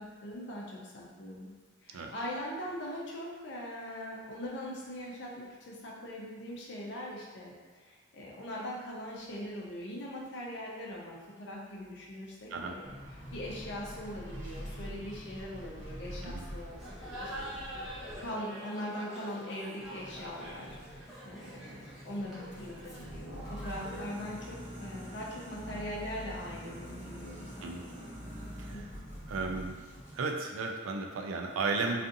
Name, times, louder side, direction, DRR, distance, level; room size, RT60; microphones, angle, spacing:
voice 1, 0.0-1.5 1.8-12.9 13.3-16.8 17.2-17.5 18.2-27.8 28.7-29.0, equal, 55° left, -4 dB, 0.5 m, -41 dB
sound 1, 12.8-18.3 19.8-30.2, equal, 35° right, 0.7 m, -45 dB
Laughter, 16.7-24.2, equal, ahead, 0.5 m, -45 dB
voice 2, 29.3-29.8 30.1-32.0, right 4 dB, 90° right, 2 dB, 0.4 m, -34 dB
2.5 x 2.4 x 2.6 m, 1.5 s
head